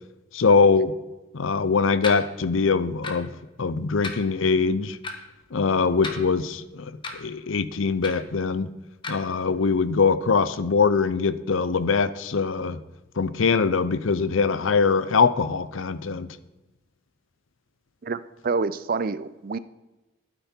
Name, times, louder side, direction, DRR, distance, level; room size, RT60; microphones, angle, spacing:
voice 1, 0.3-0.9 1.3-3.3 3.6-5.0 5.5-8.7 9.1-12.8 13.2-16.3, left 5 dB, 75° left, 15 dB, 0.6 m, -22 dB
sound 1, 2.0-2.2 3.0-3.3 4.0-4.2 5.0-5.1 6.0-6.5 7.0-7.2 8.0-8.3 9.0-9.1, left 3 dB, 25° left, 1.3 m, -34 dB
voice 2, 18.0-19.6, right 4 dB, 45° right, 16 dB, 0.5 m, -27 dB
12.0 x 9.5 x 4.4 m, 1.1 s
head